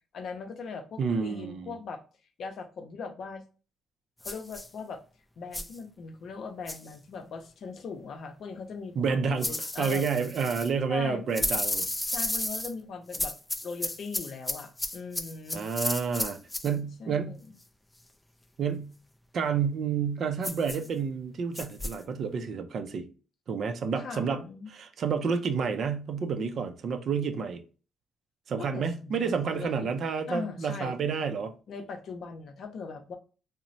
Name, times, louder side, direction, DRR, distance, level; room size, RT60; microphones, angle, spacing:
voice 1, 0.1-2.0 2.4-3.4 4.2-5.0 5.4-10.1 10.9-11.2 12.1-13.3 13.6-15.7 17.0-17.4 24.0-24.7 28.6-29.9 30.3-30.9 31.7-33.2, left 4 dB, 60° left, 0.5 m, -40 dB
voice 2, 1.0-1.8 9.0-11.9 15.5-17.4 18.6-18.9 19.3-23.1 23.5-27.6 28.5-31.5, right 6 dB, 60° right, 0.4 m, -30 dB
sound 1, 4.2-4.7 5.5-5.8 6.7-6.9 9.4-10.7 11.3-12.7 13.1-16.7 20.4-20.9 21.6-22.0, left 1 dB, 10° left, 0.3 m, -33 dB
2.9 x 2.0 x 2.5 m
cardioid pair, 90°, 0 cm